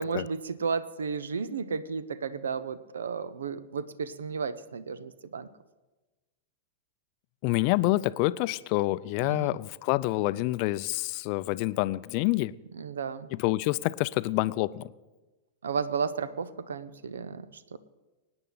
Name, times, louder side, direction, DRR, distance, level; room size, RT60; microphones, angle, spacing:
voice 1, 0.0-5.5 9.2-9.6 12.7-13.3 15.6-17.8, right 5 dB, 80° right, 15 dB, 0.7 m, -33 dB
voice 2, 7.4-12.5 13.4-14.9, left 19 dB, 50° left, 17 dB, 0.4 m, -27 dB
24.0 x 9.7 x 4.0 m, 1.2 s
hypercardioid pair, 100°, 0 cm